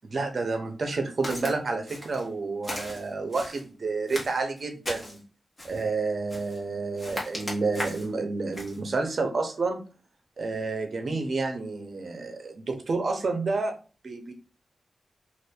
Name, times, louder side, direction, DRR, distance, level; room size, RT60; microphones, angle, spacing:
voice 1, 0.1-5.2 5.6-9.8 10.4-13.7 14.0-14.3, right 3 dB, 55° right, 5 dB, 0.8 m, -29 dB
Walk footsteps, 1.2-1.5 1.9-2.3 2.6-3.6 4.1-5.2 5.6-5.9 6.3-6.6 7.0-8.1 8.5-8.8, left 1 dB, 30° left, 1.3 m, -37 dB
2.6 x 2.5 x 3.4 m, 0.35 s
wide cardioid pair, 90°, 0 cm